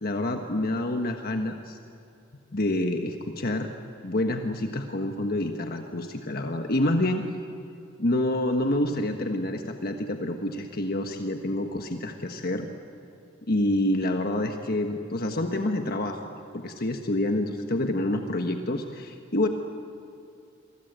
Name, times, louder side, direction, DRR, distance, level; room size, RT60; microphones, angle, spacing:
voice 1, 0.0-1.8 2.5-3.7 4.0-7.2 8.0-12.7 13.5-19.5, left 1 dB, 50° left, 4 dB, 1.3 m, -27 dB
28.5 x 23.0 x 8.1 m, 2.5 s
head